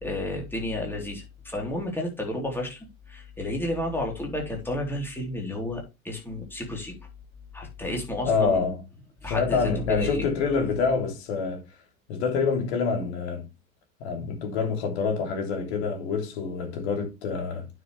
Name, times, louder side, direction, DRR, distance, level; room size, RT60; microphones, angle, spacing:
voice 1, 0.0-6.9 7.5-8.6 9.2-10.3, left 1 dB, 5° left, 3.7 m, -31 dB
voice 2, 8.2-8.8 9.3-11.6 12.1-13.4 14.0-17.7, left 5 dB, 50° left, 3.2 m, -26 dB
9.3 x 7.0 x 3.3 m
figure-of-eight pair, 90°, 42 cm